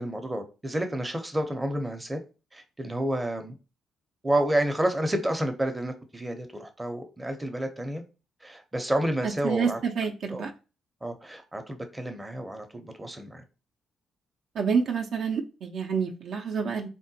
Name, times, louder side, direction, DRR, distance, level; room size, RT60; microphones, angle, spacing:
voice 1, 0.0-2.2 2.5-3.6 4.2-8.0 8.4-9.8 10.3-10.4 11.0-13.4, right 1 dB, 15° right, 0.6 m, -30 dB
voice 2, 9.2-10.5 14.5-16.9, right 6 dB, 70° right, 0.5 m, -28 dB
3.6 x 2.1 x 2.7 m
cardioid pair, 90°, 0 cm